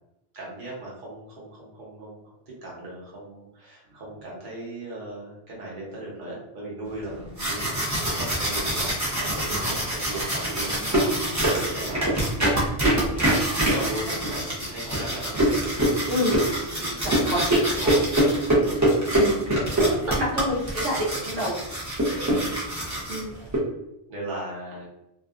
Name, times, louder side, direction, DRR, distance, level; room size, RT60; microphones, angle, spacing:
voice 1, 0.3-7.9 8.1-12.5 12.8-13.0 13.6-15.9 16.7-17.0 17.7-18.8 22.3-22.7 23.4-23.5 24.1-24.9, right 1 dB, 45° right, -5 dB, 1.0 m, -37 dB
sound 1, 7.1-23.6, right 1 dB, 20° right, 0.5 m, -24 dB
voice 2, 16.1-16.4 17.0-17.6 19.1-19.4 19.7-21.6 23.1-23.4, equal, 80° right, -4 dB, 1.0 m, -27 dB
2.6 x 2.3 x 2.4 m, 0.87 s
omnidirectional pair, 1.3 m